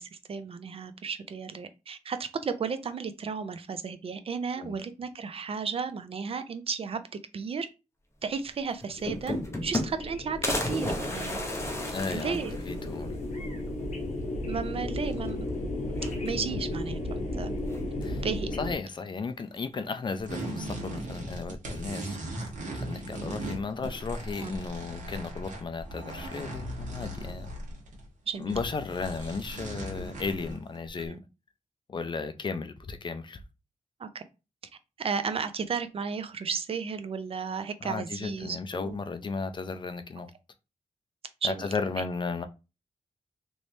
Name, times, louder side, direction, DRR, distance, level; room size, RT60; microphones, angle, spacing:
voice 1, 0.0-7.0 7.3-7.7 8.2-11.4 12.1-12.6 14.5-15.4 16.2-17.5 18.2-18.5 24.4-24.5 28.3-28.5 31.0-31.2 34.0-34.2 35.0-39.0 41.4-41.7, right 5 dB, 50° right, 0.4 m, -34 dB
sound 1, 8.5-8.6 8.8-10.1 10.4-13.0 13.4-13.5 13.8-13.9 15.1-15.5 15.9-16.6 17.7-18.2, left 1 dB, 20° left, 0.8 m, -33 dB
sound 2, 8.9-18.7, left 1 dB, 65° left, 0.8 m, -34 dB
voice 2, 11.9-13.2 18.0-18.2 18.6-22.2 22.5-27.5 28.4-31.2 31.9-33.4 37.8-40.3 41.4-42.4, left 4 dB, 40° left, 0.4 m, -35 dB
sound 3, 20.2-28.1 28.3-31.0, right 1 dB, 80° right, 1.3 m, -38 dB
3.2 x 3.1 x 2.7 m
wide cardioid pair, 120°, 13 cm